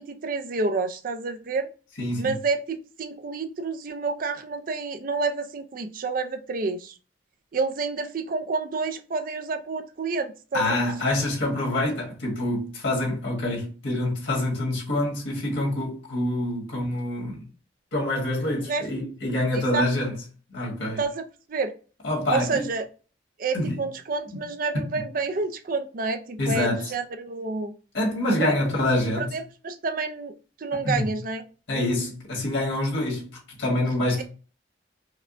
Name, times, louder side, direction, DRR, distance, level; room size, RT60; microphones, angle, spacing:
voice 1, 0.0-1.7 2.2-6.9 7.5-10.7 18.7-18.8 19.5-19.9 21.0-21.2 21.5-21.7 22.3-22.8 23.4-27.7 28.4-28.5 29.2-30.3 30.6-31.4 34.2-34.3, right 4 dB, 45° right, 0.4 m, -29 dB
voice 2, 2.0-2.4 10.5-17.4 17.9-20.2 20.5-21.0 22.0-22.6 23.5-23.8 26.4-26.9 27.9-29.3 30.8-31.1 31.7-34.2, left 1 dB, 75° left, 1.6 m, -26 dB
4.8 x 2.2 x 2.5 m
head